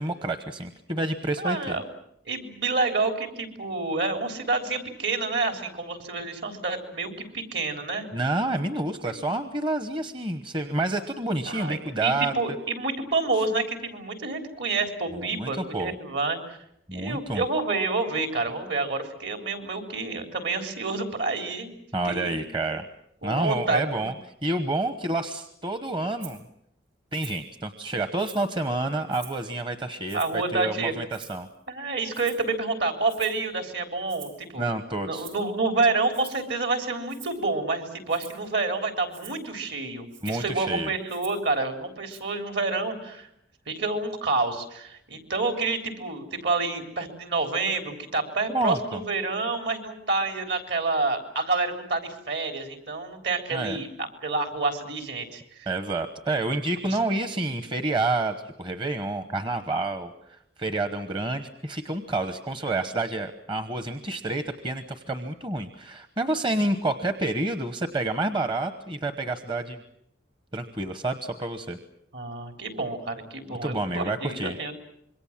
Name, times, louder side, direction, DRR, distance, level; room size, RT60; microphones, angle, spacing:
voice 1, 0.0-1.8 8.1-12.3 15.1-15.9 16.9-17.4 21.9-22.8 23.2-24.1 24.4-26.4 27.1-31.5 34.6-35.3 40.2-40.9 48.5-49.0 53.5-53.8 55.7-69.8 70.5-71.8 73.6-74.6, right 2 dB, 25° right, 9 dB, 1.0 m, -29 dB
voice 2, 1.4-1.8 2.3-8.1 9.0-9.1 11.5-16.6 16.9-21.7 22.0-22.4 23.2-24.1 30.1-30.9 31.7-34.7 35.0-43.3 43.7-55.7 56.9-57.0 72.1-74.8, right 3 dB, 65° right, 6 dB, 3.8 m, -28 dB
Rattle (instrument), 26.2-26.4 27.1-27.5 27.9-28.6 29.1-29.5 30.1-30.5 31.1-31.6 32.1-32.5 33.1-33.5 34.1-34.5 35.1-35.5 36.1-36.5 37.1-37.4 38.1-38.5 39.1-39.4 40.1-40.5 41.1-41.5 42.1-42.2, right 9 dB, 85° right, 5.1 m, -47 dB
26.5 x 23.0 x 7.4 m, 0.75 s
head